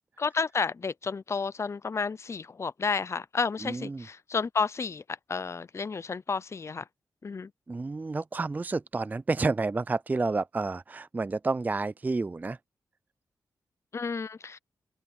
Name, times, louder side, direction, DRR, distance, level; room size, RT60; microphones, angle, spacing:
voice 1, 0.2-6.9 7.2-7.5 13.9-14.6, left 5 dB, 40° left, 0.6 m, -31 dB
voice 2, 3.6-4.0 7.7-12.6, right 3 dB, 25° right, 0.3 m, -30 dB
cardioid pair, 60°, 7 cm